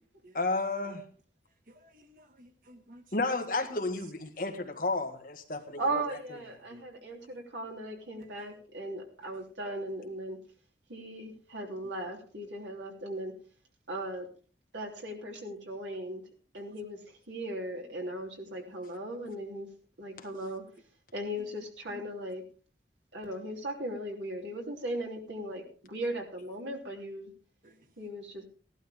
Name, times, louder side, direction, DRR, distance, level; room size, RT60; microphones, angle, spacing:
voice 1, 0.3-1.1 3.1-6.0, left 3 dB, 50° left, 4 dB, 1.7 m, -32 dB
voice 2, 1.7-3.0 3.7-3.8 6.7-6.8 21.9-22.1 27.6-27.8, equal, 50° right, 7 dB, 1.4 m, -53 dB
voice 3, 5.8-10.4 10.9-13.3 13.9-14.3 14.7-16.2 16.5-17.0 17.3-19.7 20.0-20.6 21.1-22.4 23.1-27.3 28.0-28.4, right 1 dB, 90° right, 0 dB, 3.3 m, -37 dB
16.5 x 12.0 x 3.6 m, 0.40 s
head